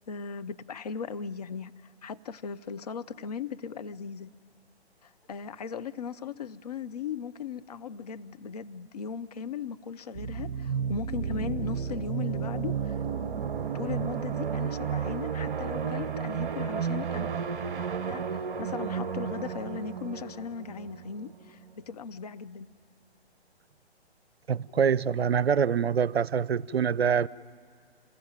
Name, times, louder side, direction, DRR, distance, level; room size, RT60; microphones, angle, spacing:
voice 1, 0.1-4.3 5.0-13.0 13.6-17.3 18.1-22.7, left 6 dB, 35° left, 0.6 m, -38 dB
sound 1, 10.1-21.7, right 7 dB, 50° right, 0.9 m, -32 dB
voice 2, 24.5-27.3, right 7 dB, 65° right, 0.6 m, -25 dB
27.5 x 20.5 x 9.1 m
figure-of-eight pair, 130°, 33 cm